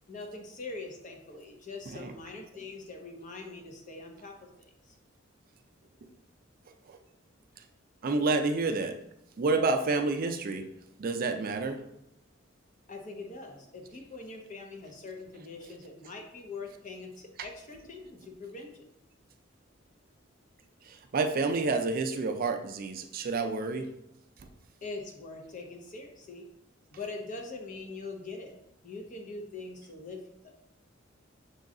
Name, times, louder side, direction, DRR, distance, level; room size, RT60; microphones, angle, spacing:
voice 1, 0.1-4.9 12.9-18.7 24.8-26.5 26.9-28.5 28.8-30.5, left 3 dB, 40° left, 2 dB, 0.7 m, -43 dB
voice 2, 8.0-9.0 9.4-10.7 11.0-11.8 20.9-23.9, right 3 dB, 45° right, 6 dB, 0.4 m, -29 dB
6.3 x 2.3 x 3.7 m, 0.79 s
head